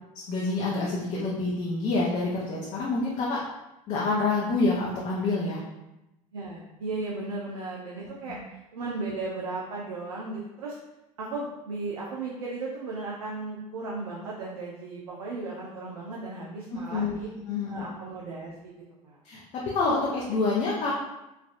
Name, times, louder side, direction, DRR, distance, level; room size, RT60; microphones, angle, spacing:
voice 1, 0.1-3.4 3.9-5.6 8.3-8.4 16.7-17.2 17.5-17.9 19.2-19.4 19.7-20.9, left 3 dB, 40° left, -4 dB, 0.6 m, -27 dB
voice 2, 6.3-8.4 8.7-10.8 11.2-17.3 17.7-18.7 19.0-19.2, right 3 dB, 80° right, -3 dB, 0.5 m, -35 dB
3.2 x 2.5 x 2.4 m, 0.96 s
hypercardioid pair, 70°, 19 cm